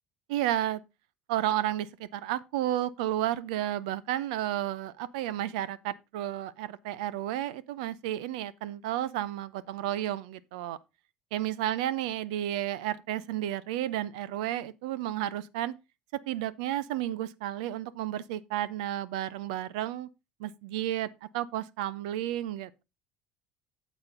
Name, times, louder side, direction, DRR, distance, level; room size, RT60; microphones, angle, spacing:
voice 1, 0.3-0.8 1.3-10.8 11.3-15.7 16.1-20.1 20.4-22.8, right 13 dB, 80° right, 0.6 m, -32 dB
8.8 x 7.1 x 3.8 m
hypercardioid pair, 75°, 4 cm